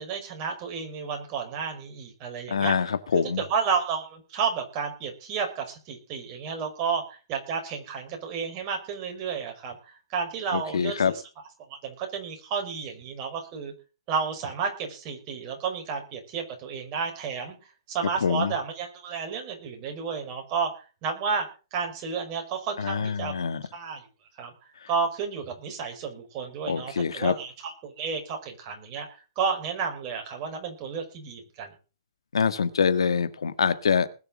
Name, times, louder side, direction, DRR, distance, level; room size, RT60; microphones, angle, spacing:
voice 1, 0.0-2.7 3.4-11.2 11.7-13.7 14.1-17.6 17.9-21.5 21.7-23.3 23.7-24.0 24.4-24.5 24.9-29.1 29.4-31.8, right 6 dB, 35° right, 4 dB, 5.3 m, -31 dB
voice 2, 2.5-3.4 10.5-11.1 18.2-18.5 22.8-23.6 26.7-27.3 32.3-34.1, left 6 dB, 85° left, 12 dB, 1.6 m, -25 dB
20.0 x 6.9 x 6.4 m, 0.34 s
hypercardioid pair, 135°, 3 cm